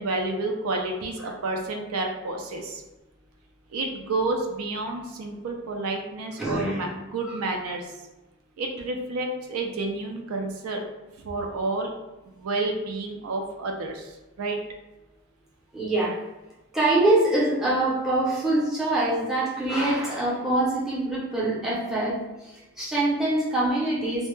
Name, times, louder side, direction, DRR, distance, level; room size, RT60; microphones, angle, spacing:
voice 1, 0.0-2.8 3.7-7.9 8.6-10.8 11.2-11.9 12.3-14.6, right 2 dB, 80° right, 2 dB, 0.4 m, -30 dB
voice 2, 6.4-6.9 7.2-7.3 15.7-16.1 16.7-24.3, right 2 dB, ahead, -8 dB, 0.6 m, -24 dB
2.1 x 2.1 x 3.0 m, 1.0 s
head